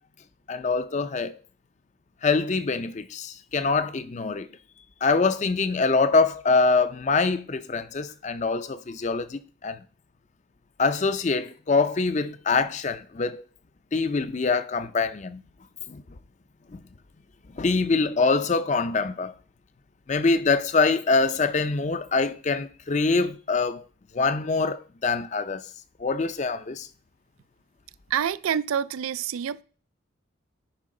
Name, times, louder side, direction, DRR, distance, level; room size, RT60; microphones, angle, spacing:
voice 1, 0.5-1.4 2.2-4.5 5.0-9.8 10.8-13.4 13.9-15.4 15.9-16.0 16.7-16.8 17.5-19.3 20.1-23.8 24.1-25.6 26.0-26.9, left 4 dB, 35° left, 0.4 m, -24 dB
voice 2, 28.1-29.6, right 8 dB, 90° right, 0.4 m, -27 dB
10.0 x 5.2 x 3.7 m
head